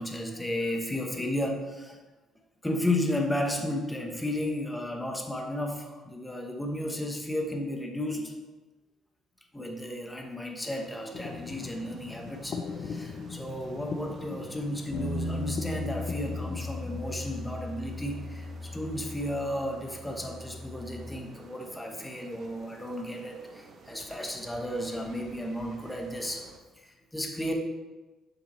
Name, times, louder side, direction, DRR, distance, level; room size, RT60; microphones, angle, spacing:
voice 1, 0.0-2.0 2.6-8.3 9.5-26.5 26.8-27.5, left 1 dB, 10° left, 2 dB, 0.9 m, -33 dB
sound 1, 10.6-26.6, right 4 dB, 55° right, 0.8 m, -52 dB
sound 2, 11.1-17.1, left 5 dB, 50° left, 0.5 m, -40 dB
sound 3, 14.9-21.2, left 2 dB, 65° left, 0.9 m, -37 dB
7.0 x 5.6 x 3.1 m, 1.2 s
cardioid pair, 115°, 0 cm